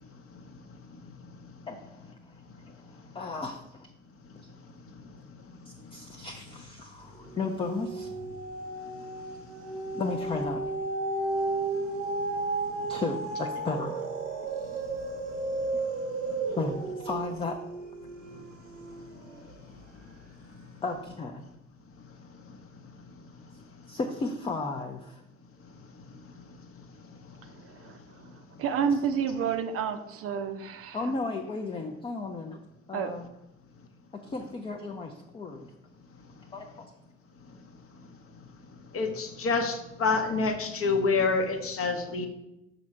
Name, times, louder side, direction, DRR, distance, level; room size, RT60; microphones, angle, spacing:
voice 1, 3.1-3.9 5.9-8.1 9.9-10.6 12.9-14.0 16.6-17.6 20.8-21.4 23.9-25.2 30.9-32.6 32.9-33.2 34.3-35.7 36.5-36.7, left 3 dB, 15° left, 3 dB, 0.5 m, -34 dB
sound 1, 6.2-6.8 7.1-19.6 20.2-20.3, right 3 dB, 80° right, 0.8 m, -34 dB
voice 2, 27.6-28.0 28.6-31.0 32.9-33.1, right 7 dB, 40° right, 7 dB, 0.5 m, -29 dB
voice 3, 38.9-42.3, left 4 dB, 40° left, 6 dB, 0.8 m, -27 dB
6.0 x 3.8 x 4.3 m, 0.89 s
figure-of-eight pair, 50°, 36 cm